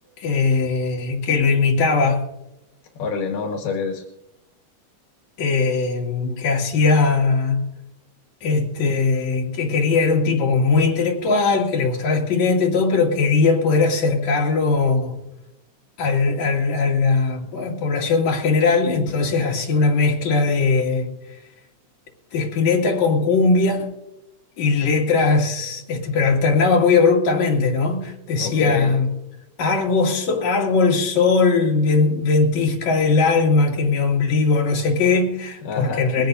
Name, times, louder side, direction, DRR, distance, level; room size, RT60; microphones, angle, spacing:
voice 1, 0.2-2.2 5.4-7.6 8.4-15.2 16.0-21.1 22.3-23.9 24.6-29.1 29.6-36.3, left 4 dB, 60° left, -1 dB, 3.6 m, -19 dB
voice 2, 3.0-4.0 28.4-28.9 35.6-36.0, left 5 dB, 80° left, 3 dB, 2.9 m, -26 dB
21.0 x 16.0 x 2.7 m, 0.93 s
omnidirectional pair, 3.8 m